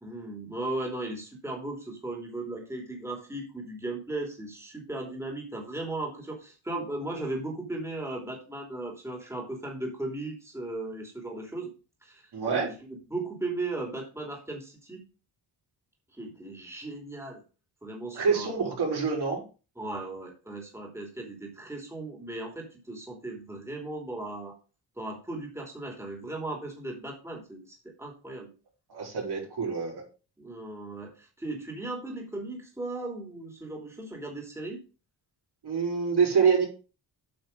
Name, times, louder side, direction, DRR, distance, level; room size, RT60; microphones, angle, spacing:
voice 1, 0.0-11.7 12.0-15.0 16.1-17.4 17.8-18.7 19.8-24.6 25.0-28.5 30.4-34.8, right 2 dB, 5° right, 0 dB, 2.9 m, -37 dB
voice 2, 12.3-12.7 18.1-19.4 28.9-30.0 35.6-36.6, right 5 dB, 65° right, -1 dB, 4.6 m, -26 dB
8.8 x 5.6 x 5.3 m, 0.33 s
cardioid pair, 100°, 42 cm